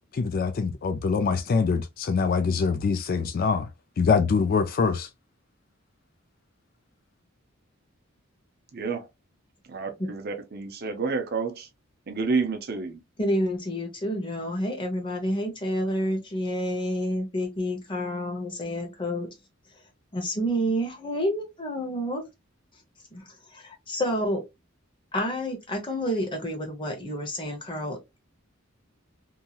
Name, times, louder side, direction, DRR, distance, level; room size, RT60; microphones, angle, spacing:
voice 1, 0.1-3.7 4.0-5.1, left 5 dB, 45° left, 0.3 m, -24 dB
voice 2, 8.7-9.1 9.7-11.7 12.1-13.0, right 4 dB, 50° right, 0.6 m, -29 dB
voice 3, 13.2-19.3 20.1-22.2 23.1-24.4 25.1-28.0, equal, 25° left, 0.9 m, -29 dB
2.8 x 2.7 x 2.3 m
head